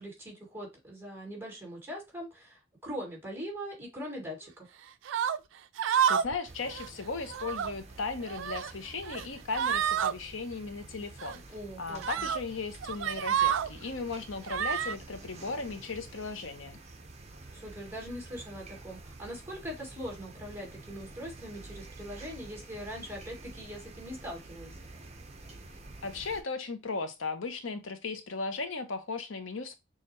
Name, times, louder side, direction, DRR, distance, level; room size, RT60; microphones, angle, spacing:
voice 1, 0.0-4.7 11.5-12.3 17.5-24.8, equal, 10° right, 2.2 m, -41 dB
sound 1, 5.1-5.4 5.8-6.4 6.7-6.9 7.3-7.7 8.2-8.7 9.1-9.2 9.5-10.1 11.2-11.4 12.0-12.4 12.8-13.7 14.5-14.9, right 9 dB, 70° right, 0.4 m, -29 dB
voice 2, 6.1-11.4 11.8-16.8 26.0-29.8, left 4 dB, 85° left, 0.8 m, -36 dB
sound 2, 6.5-26.4, right 2 dB, 35° right, 0.8 m, -49 dB
6.4 x 2.3 x 3.0 m
head